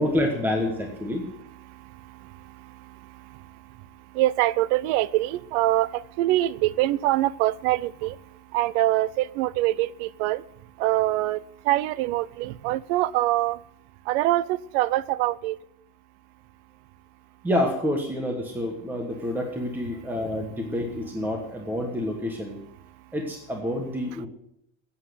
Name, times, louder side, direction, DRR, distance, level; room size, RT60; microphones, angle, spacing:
voice 1, 0.0-1.2 17.4-22.6 23.1-24.3, left 1 dB, 5° right, 3 dB, 1.2 m, -28 dB
voice 2, 1.1-10.4 10.8-13.6 14.0-15.6 19.9-20.0, right 16 dB, 55° right, 21 dB, 0.6 m, -25 dB
15.5 x 8.4 x 7.9 m, 0.76 s
cardioid pair, 175°, 40 cm